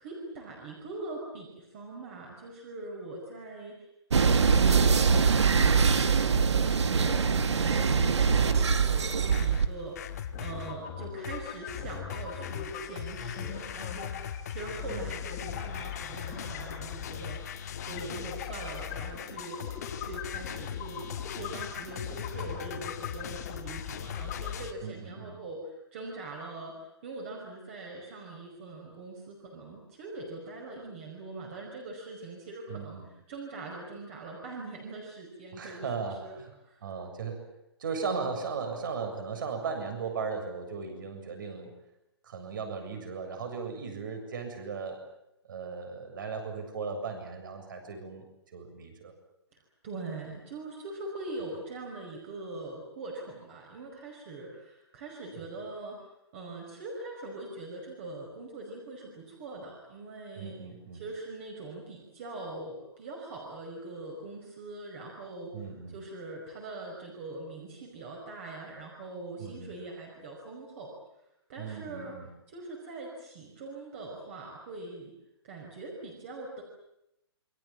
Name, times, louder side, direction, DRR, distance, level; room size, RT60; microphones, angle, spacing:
voice 1, 0.0-3.9 4.2-17.4 17.8-26.7 27.0-33.0 33.3-36.9 49.5-56.0 56.3-60.6 60.9-65.5 65.9-71.0 71.5-72.2 72.5-75.1 75.4-76.6, right 2 dB, 30° right, 0 dB, 5.4 m, -42 dB
sound 1, 4.1-9.7, right 5 dB, 90° right, 2.3 m, -23 dB
sound 2, 9.3-10.7 11.2-24.7, left 9 dB, 35° left, 2.0 m, -39 dB
sound 3, 10.3-24.5, left 7 dB, 20° left, 3.4 m, -43 dB
voice 2, 14.9-15.2 24.8-25.4 32.7-33.1 35.5-36.5 36.8-37.4 37.8-41.7 42.2-45.0 45.5-49.1 55.4-55.5 60.4-61.0 65.5-66.0 69.4-69.8 71.6-72.3, right 5 dB, 45° right, 6 dB, 7.5 m, -37 dB
28.0 x 24.5 x 7.5 m, 0.84 s
hypercardioid pair, 175°, 14 cm